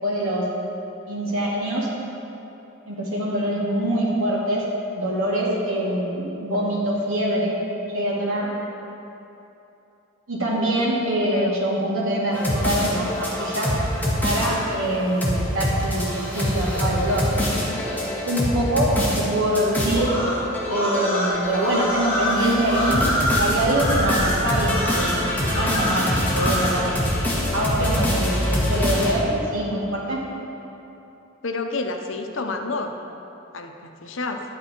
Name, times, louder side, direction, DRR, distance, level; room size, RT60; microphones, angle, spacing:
voice 1, 0.0-0.4 1.1-1.9 2.9-4.6 4.9-7.6 7.9-8.5 10.3-13.7 14.2-17.2 18.2-20.1 20.7-23.0 23.4-27.0 27.5-30.2, right 1 dB, 80° right, -5 dB, 2.6 m, -24 dB
sound 1, 12.3-29.1, left 1 dB, 10° left, 1.7 m, -25 dB
sound 2, 19.9-26.8, equal, 25° left, 2.0 m, -26 dB
voice 2, 31.4-32.9 33.5-34.4, left 3 dB, 65° left, 5 dB, 0.8 m, -29 dB
11.0 x 8.8 x 4.5 m, 2.9 s
head